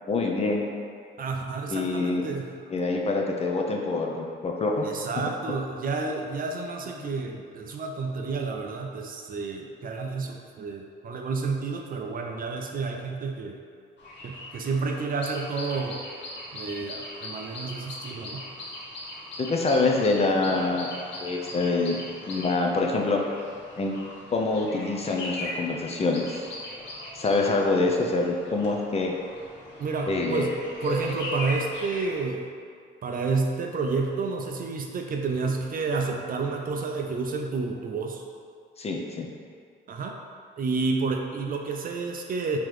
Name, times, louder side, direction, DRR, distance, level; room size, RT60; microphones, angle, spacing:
voice 1, 0.1-0.6 1.7-2.3 2.7-4.9 7.0-7.1 19.5-20.9 21.2-22.0 22.3-23.2 23.8-23.9 24.3-26.5 27.1-29.1 30.1-30.5 38.8-39.3, left 3 dB, 30° left, 0 dB, 0.5 m, -25 dB
voice 2, 1.2-2.5 4.8-13.6 14.2-16.0 16.5-18.4 29.8-30.5 30.8-32.5 33.0-38.2 39.9-40.2 40.6-42.6, right 4 dB, 45° right, 2 dB, 0.4 m, -30 dB
sound 1, 14.0-32.2, left 1 dB, 65° left, 0.8 m, -39 dB
3.7 x 2.9 x 3.2 m, 2.2 s
cardioid pair, 90°, 20 cm